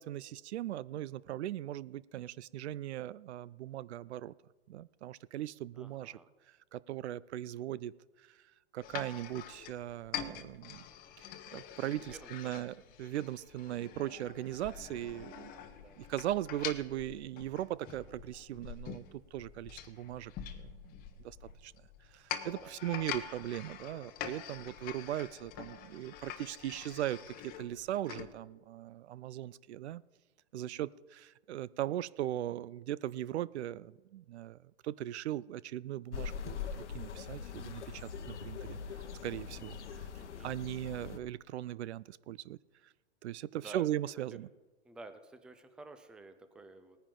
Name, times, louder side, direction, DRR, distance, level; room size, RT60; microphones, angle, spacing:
voice 1, 0.0-4.3 4.7-6.2 6.7-7.9 8.7-10.8 11.2-11.3 11.5-15.5 16.0-19.0 19.3-20.9 21.2-21.4 21.6-21.7 22.1-30.0 30.5-34.6 34.8-36.6 36.9-38.8 39.2-39.8 40.4-42.6 43.2-44.5, right 13 dB, 70° right, 21 dB, 0.5 m, -39 dB
voice 2, 5.7-6.3 11.7-12.5 15.7-16.0 22.5-22.7 40.2-40.5 43.5-43.9 44.3-44.4 44.8-47.0, right 2 dB, 5° right, 9 dB, 0.4 m, -52 dB
sound 1, 8.8-28.3, left 9 dB, 25° left, 1.0 m, -45 dB
sound 2, 36.1-41.2, left 7 dB, 85° left, 1.1 m, -42 dB
18.5 x 10.0 x 3.8 m, 1.2 s
hypercardioid pair, 130°, 34 cm